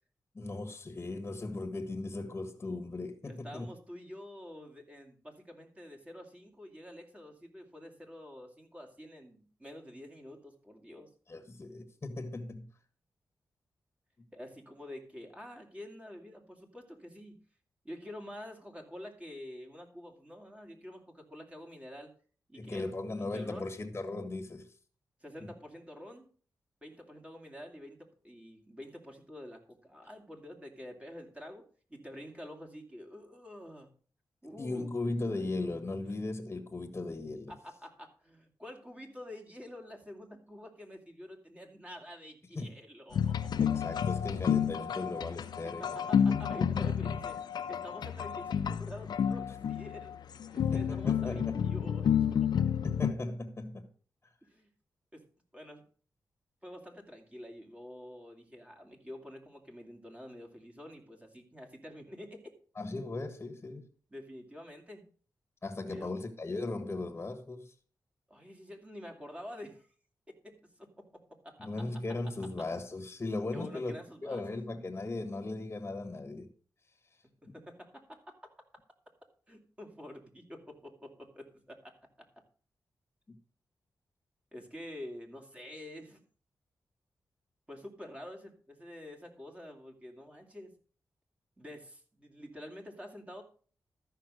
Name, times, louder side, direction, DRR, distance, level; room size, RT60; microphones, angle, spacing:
voice 1, 0.3-3.7 11.3-12.7 22.5-24.7 34.6-37.5 42.5-42.7 43.6-46.0 50.7-51.7 52.8-53.9 62.7-63.9 65.6-67.7 71.6-73.9 74.2-76.5 83.3-83.4, left 2 dB, 30° left, 1.5 m, -37 dB
voice 2, 3.3-11.1 14.3-17.4 17.8-22.1 22.5-22.9 23.3-23.7 25.2-26.3 26.8-31.6 31.9-33.9 34.4-34.9 37.5-43.5 45.7-50.1 50.5-52.6 54.4-54.7 55.1-55.2 55.5-55.8 56.6-62.4 64.1-65.1 65.9-66.2 68.3-69.9 70.3-70.9 71.4-71.9 72.6-72.7 73.5-74.4 77.4-78.4 79.5-82.3 84.5-86.2 87.7-90.7 91.6-93.4, left 1 dB, 15° right, 2.6 m, -48 dB
sound 1, 43.1-53.1, left 8 dB, 80° left, 0.7 m, -30 dB
13.5 x 5.6 x 6.4 m
cardioid pair, 85°, 7 cm